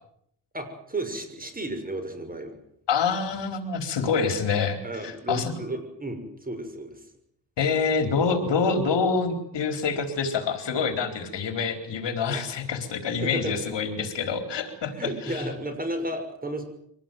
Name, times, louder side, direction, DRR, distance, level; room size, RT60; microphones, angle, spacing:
voice 1, 0.5-2.5 4.2-4.3 4.8-7.0 12.2-12.4 13.2-13.6 15.0-16.6, right 1 dB, 20° right, 7 dB, 6.5 m, -33 dB
voice 2, 2.9-5.5 7.6-15.4, left 5 dB, 70° left, 8 dB, 4.2 m, -26 dB
24.5 x 19.0 x 9.3 m, 0.71 s
cardioid pair, 115°, 43 cm